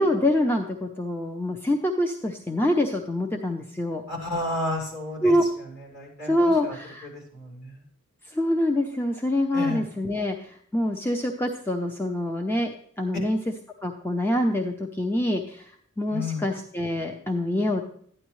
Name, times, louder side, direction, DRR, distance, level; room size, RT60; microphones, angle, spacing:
voice 1, 0.0-4.0 5.2-5.4 6.2-7.1 8.3-13.4 13.8-17.8, left 1 dB, 10° left, 3 dB, 0.6 m, -25 dB
voice 2, 4.1-5.3 5.9-6.7 7.3-7.7 9.5-9.8 16.1-16.4, left 2 dB, 50° left, -3 dB, 5.1 m, -31 dB
12.5 x 10.0 x 3.1 m, 0.62 s
head